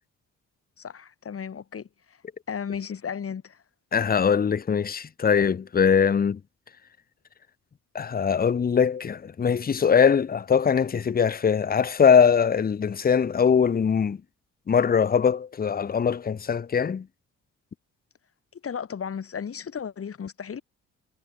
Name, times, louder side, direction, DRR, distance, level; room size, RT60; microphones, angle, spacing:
voice 1, 0.8-2.2 2.5-3.6 18.6-20.6, left 7 dB, 50° left, 6.3 m, -34 dB
voice 2, 3.9-6.4 7.9-14.2 14.7-17.1, left 7 dB, 30° left, 0.9 m, -21 dB
cardioid pair, 90°, 30 cm